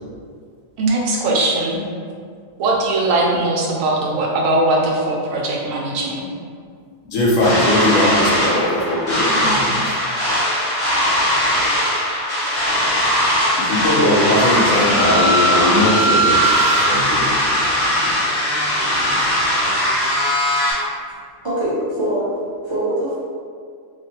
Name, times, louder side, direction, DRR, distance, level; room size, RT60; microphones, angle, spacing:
voice 1, 0.8-1.8 2.6-6.3, right 2 dB, 80° right, -1 dB, 1.0 m, -20 dB
voice 2, 7.0-9.8 13.6-17.3 21.8-21.9, left 1 dB, 85° left, -4 dB, 1.1 m, -19 dB
sound 1, 7.4-20.7, equal, 45° left, 1.3 m, -19 dB
voice 3, 21.4-22.3 22.7-23.1, right 1 dB, 40° right, -11 dB, 0.4 m, -23 dB
3.2 x 2.5 x 2.7 m, 2.1 s
omnidirectional pair, 1.4 m